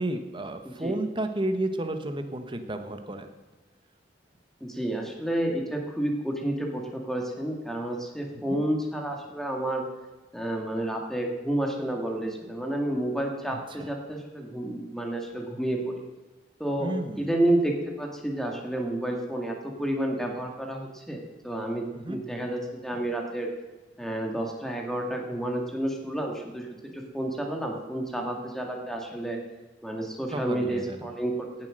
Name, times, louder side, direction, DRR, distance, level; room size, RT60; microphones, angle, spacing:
voice 1, 0.0-3.3 8.5-8.6 13.5-13.9 16.8-17.3 21.9-22.2 30.3-31.1, right 1 dB, 25° right, 7 dB, 1.1 m, -32 dB
voice 2, 4.6-9.8 10.3-15.9 16.6-23.5 24.0-29.4 29.8-31.5, right 1 dB, ahead, 1 dB, 1.9 m, -30 dB
16.5 x 7.5 x 6.4 m, 1.2 s
head